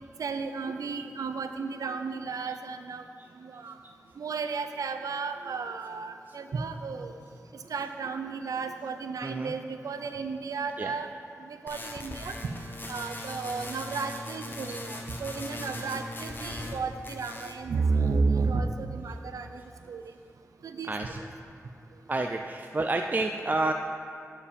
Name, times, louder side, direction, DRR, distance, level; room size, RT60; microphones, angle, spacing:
voice 1, 0.2-3.0 3.4-3.7 4.2-7.1 7.7-11.1 11.5-12.5 12.9-19.6 19.9-20.0 20.6-20.9, right 4 dB, 85° right, 8 dB, 0.5 m, -32 dB
voice 2, 9.2-9.5 10.0-10.1 10.8-10.9 15.7-16.0 20.8-21.2 22.1-23.7, right 2 dB, 30° right, 4 dB, 0.4 m, -30 dB
sound 1, 11.7-16.8 17.0-17.6, left 1 dB, 35° left, 1.0 m, -39 dB
11.0 x 4.9 x 5.2 m, 2.5 s
cardioid pair, 65°, 6 cm